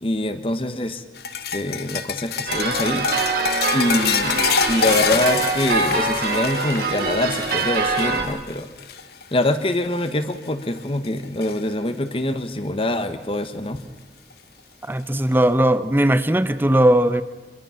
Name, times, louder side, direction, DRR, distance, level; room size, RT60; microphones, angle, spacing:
voice 1, 0.0-1.0 1.5-3.1 3.7-4.4 4.7-8.7 9.3-13.8, left 1 dB, 30° left, 10 dB, 1.3 m, -24 dB
sound 1, 1.2-9.7 10.0-10.3 10.8-11.6 12.9-13.0 14.3-14.4, left 6 dB, 60° left, 1.0 m, -27 dB
sound 2, 2.5-8.2, right 4 dB, 55° right, 2.6 m, -24 dB
voice 2, 14.9-17.2, right 1 dB, 10° right, 12 dB, 0.8 m, -18 dB
25.0 x 22.0 x 5.8 m, 1.2 s
head